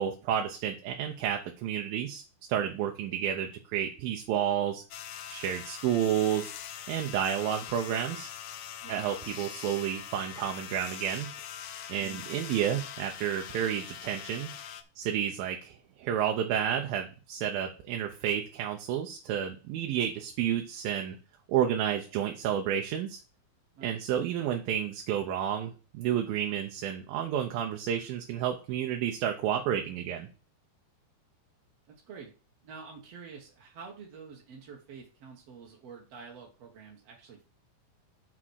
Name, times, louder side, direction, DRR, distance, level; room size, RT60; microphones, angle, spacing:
voice 1, 0.0-2.2 2.5-4.8 5.3-6.5 6.9-8.3 8.9-11.3 11.9-14.5 15.0-21.2 21.5-23.2 23.8-30.3, right 9 dB, 85° right, 3 dB, 2.6 m, -30 dB
sound 1, 4.9-14.8, left 9 dB, 85° left, 1.5 m, -42 dB
voice 2, 32.6-37.5, right 5 dB, 55° right, -1 dB, 2.1 m, -47 dB
6.2 x 5.5 x 6.3 m, 0.34 s
omnidirectional pair, 4.1 m